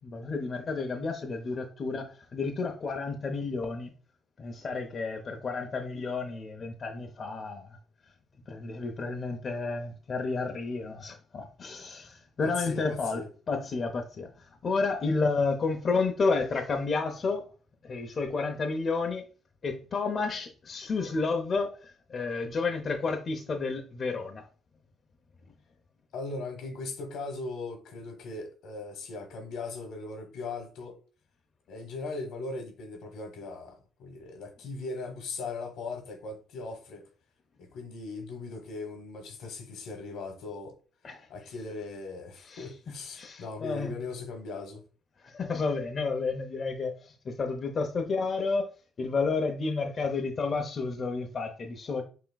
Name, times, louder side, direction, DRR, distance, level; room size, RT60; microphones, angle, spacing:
voice 1, 0.0-3.9 4.4-7.7 8.5-14.3 14.6-17.5 17.8-19.2 19.6-24.5 41.0-41.2 42.5-42.6 43.2-43.9 45.3-48.7 49.0-52.0, left 4 dB, 45° left, 0.7 m, -31 dB
voice 2, 12.4-13.3 26.1-31.0 31.7-37.0 37.6-40.7 41.3-44.8, left 3 dB, 80° left, 1.2 m, -39 dB
5.8 x 2.9 x 2.2 m
cardioid pair, 90°, 0 cm